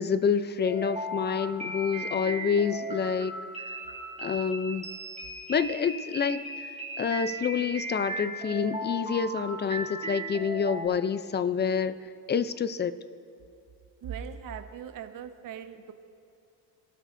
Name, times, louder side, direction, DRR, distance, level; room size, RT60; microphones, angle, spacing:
voice 1, 0.0-3.3 4.2-4.9 5.5-6.7 7.0-12.0 12.3-13.0, left 6 dB, 30° left, 13 dB, 0.5 m, -28 dB
sound 1, 0.6-10.9, right 1 dB, 20° right, 3.9 m, -37 dB
voice 2, 14.0-15.9, right 7 dB, 60° right, 8 dB, 1.2 m, -40 dB
27.0 x 12.5 x 2.7 m, 2.6 s
cardioid pair, 105°, 37 cm